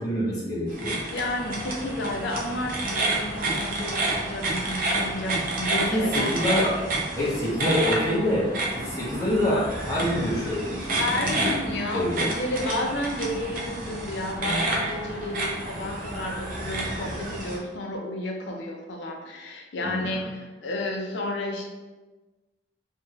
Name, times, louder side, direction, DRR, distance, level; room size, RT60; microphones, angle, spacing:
voice 1, 0.0-1.0 5.7-6.7 7.1-8.5 8.7-11.5 11.9-12.3 19.8-20.1, left 1 dB, 20° left, -7 dB, 0.9 m, -26 dB
sound 1, 0.7-17.6, right 2 dB, 50° right, 0.6 m, -29 dB
voice 2, 1.1-6.6 10.9-21.7, left 1 dB, 80° left, 1 dB, 0.5 m, -31 dB
2.8 x 2.7 x 2.4 m, 1.2 s
head